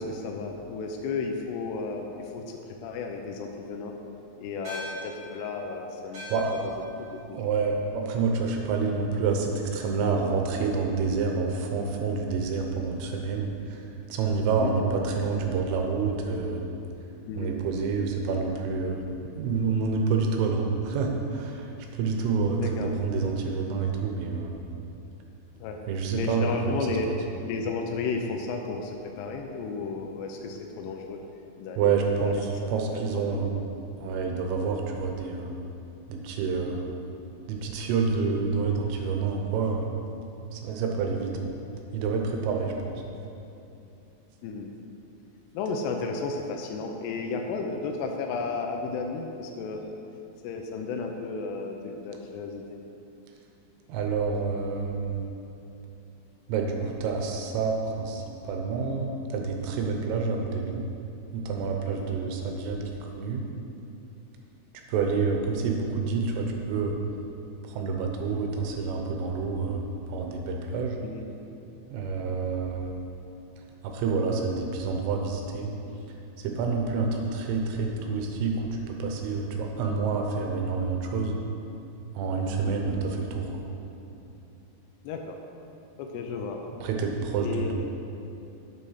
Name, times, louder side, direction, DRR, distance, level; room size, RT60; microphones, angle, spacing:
voice 1, 0.0-3.9 4.4-6.4 7.0-7.4 14.6-14.7 17.3-17.5 22.6-22.9 25.6-25.8 26.1-31.2 31.6-32.3 32.9-33.4 44.4-44.7 45.5-49.8 50.4-52.8 62.1-62.4 71.0-71.3 79.9-80.0 82.6-82.7 85.0-85.4 86.0-86.6 87.4-87.7, left 4 dB, 85° left, 2 dB, 2.4 m, -33 dB
sound 1, 4.6-9.3, left 1 dB, 35° right, 2.4 m, -44 dB
voice 2, 6.3-6.8 7.3-13.8 14.1-16.6 17.4-21.7 22.0-24.6 25.9-27.2 31.8-33.6 34.0-35.6 36.1-36.9 37.5-40.0 40.5-41.5 41.9-43.0 53.9-55.3 56.5-60.8 61.3-63.4 64.9-67.0 67.6-71.0 71.9-72.9 73.8-75.7 76.4-81.4 82.2-83.7 86.8-87.7, right 4 dB, 90° right, 2 dB, 3.5 m, -28 dB
8.4 x 7.7 x 5.7 m, 2.8 s
omnidirectional pair, 5.6 m